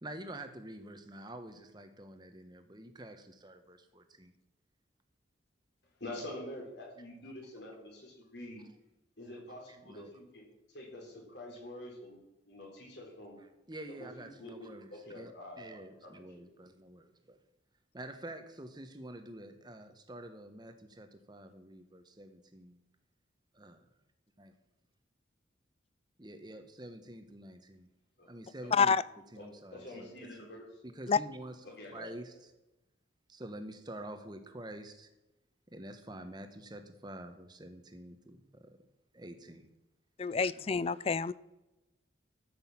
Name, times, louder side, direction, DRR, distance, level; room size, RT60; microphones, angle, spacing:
voice 1, 0.0-4.3 9.7-10.1 13.7-15.3 15.6-17.4 17.9-22.8 23.5-23.9 24.4-24.5 26.2-27.9 28.3-29.0 29.3-30.4 30.8-32.5 33.3-35.1 35.7-38.8 39.1-39.7 40.2-40.3, right 1 dB, 20° right, 8 dB, 1.1 m, -48 dB
voice 2, 6.0-8.6 9.2-10.4 10.7-12.2 12.5-13.4 14.0-16.5 28.2-28.3 28.6-28.8 29.4-30.6 31.6-32.2, left 1 dB, 65° left, -1 dB, 4.2 m, -47 dB
voice 3, 28.7-29.0 31.1-31.2 40.2-41.3, left 5 dB, 30° left, 19 dB, 0.3 m, -27 dB
13.5 x 6.4 x 7.4 m, 0.98 s
head